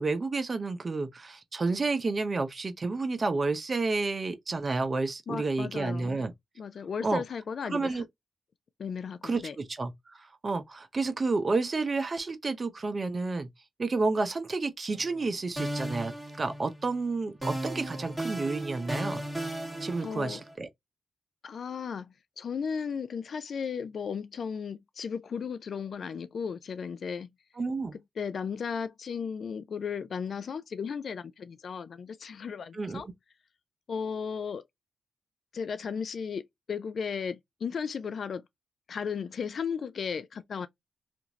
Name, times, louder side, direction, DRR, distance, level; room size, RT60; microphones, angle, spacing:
voice 1, 0.0-6.3 7.0-7.2 7.7-8.0 9.2-10.2 10.4-13.5 13.8-19.2 19.8-20.7 27.6-28.0 32.7-33.1, right 3 dB, 40° right, 0.7 m, -30 dB
voice 2, 5.3-6.2 6.6-8.0 8.8-9.6 20.0-20.4 21.4-27.3 27.9-33.1 33.9-34.6 35.5-38.4 38.9-40.7, left 6 dB, 65° left, 0.3 m, -35 dB
sound 1, 14.9-15.3 15.6-17.0 17.4-20.5, right 1 dB, 10° right, 1.5 m, -36 dB
2.8 x 2.5 x 2.6 m
cardioid pair, 60°, 0 cm